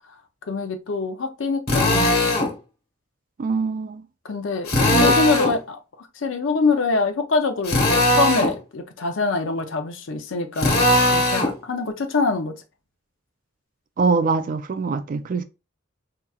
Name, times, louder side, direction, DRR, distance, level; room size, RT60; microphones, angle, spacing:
voice 1, 0.5-2.3 4.2-10.8 11.1-12.5, left 3 dB, 75° left, 0.6 m, -24 dB
Drill, 1.7-2.5 4.7-5.6 7.6-8.5 10.6-11.5, left 1 dB, 50° left, 1.4 m, -19 dB
voice 2, 3.4-4.0 4.9-5.2 14.0-15.4, right 4 dB, 45° right, 0.4 m, -23 dB
4.6 x 2.8 x 2.3 m
head